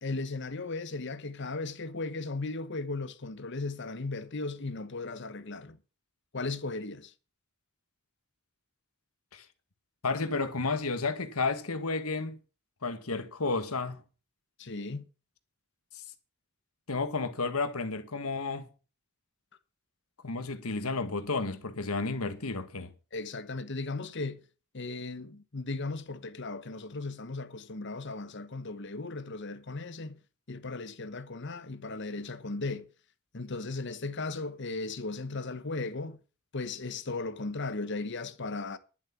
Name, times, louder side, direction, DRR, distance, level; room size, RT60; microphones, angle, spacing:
voice 1, 0.0-5.8 6.3-7.1 14.6-15.1 23.1-24.4 24.7-30.2 30.5-32.9 33.3-36.2 36.5-38.8, left 3 dB, 55° left, 1.0 m, -36 dB
voice 2, 10.0-12.4 12.8-14.0 16.9-18.7 20.2-22.9, left 3 dB, 90° left, 1.5 m, -32 dB
11.5 x 7.5 x 7.1 m
head